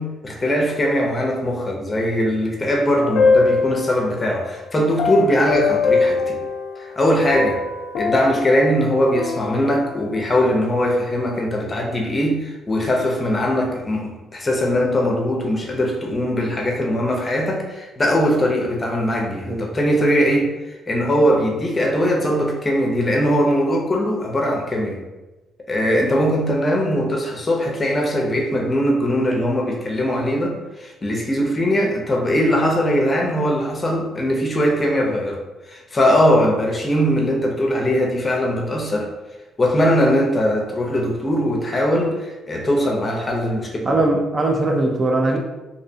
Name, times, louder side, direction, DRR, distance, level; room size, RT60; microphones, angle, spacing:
voice 1, 0.0-6.4 6.8-7.6 8.0-25.0 25.7-35.4 35.7-39.1 39.6-44.0, equal, 30° left, 0 dB, 0.6 m, -20 dB
sound 1, 2.9-4.3 5.0-7.0 7.3-10.2, left 4 dB, 80° left, 0.3 m, -22 dB
voice 2, 43.8-45.4, right 2 dB, 35° right, 1 dB, 0.4 m, -20 dB
2.6 x 2.1 x 2.7 m, 1.1 s
cardioid pair, 90°, 0 cm